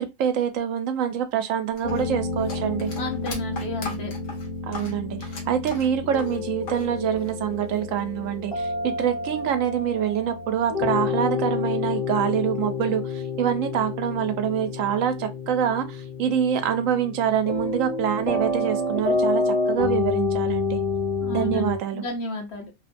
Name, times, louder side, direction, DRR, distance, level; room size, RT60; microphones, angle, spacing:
voice 1, 0.0-2.9 4.6-20.8 21.3-22.0, right 9 dB, 90° right, 1.0 m, -25 dB
sound 1, 1.8-6.9 7.1-8.0, left 3 dB, 75° left, 1.3 m, -39 dB
sound 2, 1.8-21.8, left 3 dB, 35° left, 0.8 m, -29 dB
voice 2, 3.0-4.1 21.2-22.7, left 2 dB, 60° left, 1.0 m, -32 dB
3.0 x 2.1 x 2.5 m
omnidirectional pair, 1.3 m